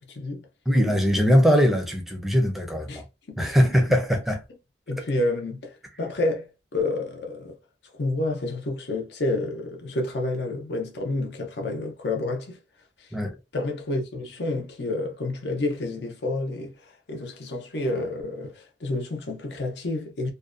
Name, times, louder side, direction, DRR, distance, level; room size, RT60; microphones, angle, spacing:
voice 1, 0.0-0.5 2.9-3.6 4.9-7.6 7.9-12.6 13.0-13.1 13.5-20.3, left 2 dB, 70° left, 0.6 m, -29 dB
voice 2, 0.7-3.0 3.4-4.4 13.1-13.3, equal, ahead, 0.5 m, -21 dB
2.5 x 2.2 x 2.5 m
head